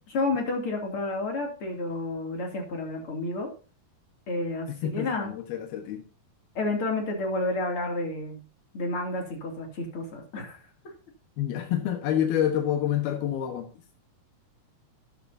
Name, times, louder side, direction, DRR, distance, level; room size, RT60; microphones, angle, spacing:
voice 1, 0.1-3.5 4.3-5.3 6.5-8.4 8.7-10.6 10.8-10.9, left 2 dB, 40° left, 2 dB, 3.2 m, -30 dB
voice 2, 4.7-6.0 11.4-13.7, left 10 dB, 85° left, 4 dB, 3.2 m, -28 dB
13.5 x 10.5 x 2.7 m, 0.36 s
omnidirectional pair, 4.3 m